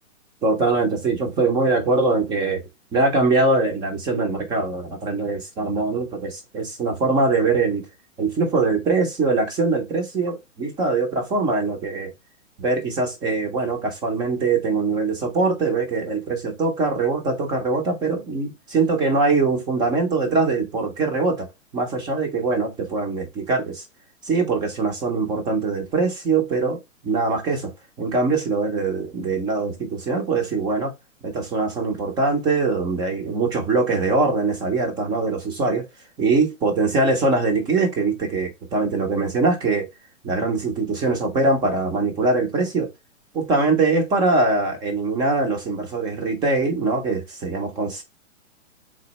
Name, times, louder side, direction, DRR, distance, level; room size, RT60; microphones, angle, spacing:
voice 1, 0.4-2.6 2.9-7.8 8.2-12.1 12.6-21.5 21.7-23.8 24.2-27.7 28.0-30.9 31.2-35.8 36.2-39.9 40.2-42.9 43.3-48.0, right 3 dB, 10° right, 0.5 m, -22 dB
3.8 x 3.1 x 2.9 m
figure-of-eight pair, 120°, 40 cm